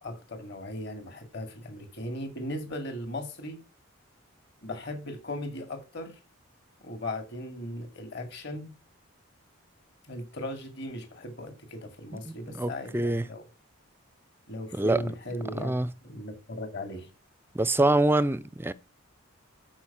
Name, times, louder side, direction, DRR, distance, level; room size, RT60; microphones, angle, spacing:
voice 1, 0.0-3.6 4.6-6.2 6.8-8.7 10.1-13.4 14.5-15.7 16.0-17.1, left 1 dB, 55° left, 2.5 m, -37 dB
voice 2, 12.1-13.2 14.7-15.0 15.6-15.9 17.5-18.7, right 2 dB, 10° right, 0.4 m, -25 dB
13.0 x 4.9 x 5.8 m
head